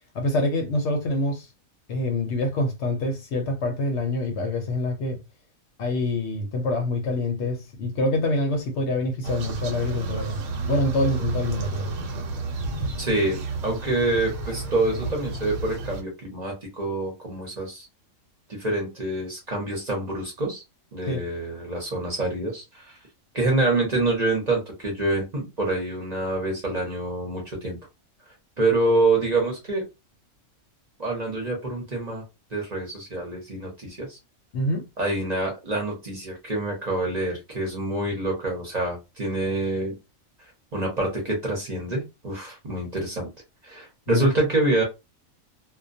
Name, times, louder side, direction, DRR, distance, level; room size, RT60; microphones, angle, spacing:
voice 1, 0.1-1.5 1.9-5.2 5.8-10.4 10.7-11.9 21.1-21.2 34.5-34.9 44.1-44.3, left 2 dB, 65° left, 0.8 m, -26 dB
sound 1, 9.2-16.0, right 3 dB, 75° right, 1.0 m, -31 dB
voice 2, 13.0-17.9 18.5-20.6 20.9-22.9 23.3-27.8 28.6-29.8 31.0-32.2 32.5-34.2 35.0-40.0 40.7-43.3 43.6-44.8, right 2 dB, 40° right, 0.8 m, -26 dB
2.2 x 2.2 x 2.5 m
omnidirectional pair, 1.4 m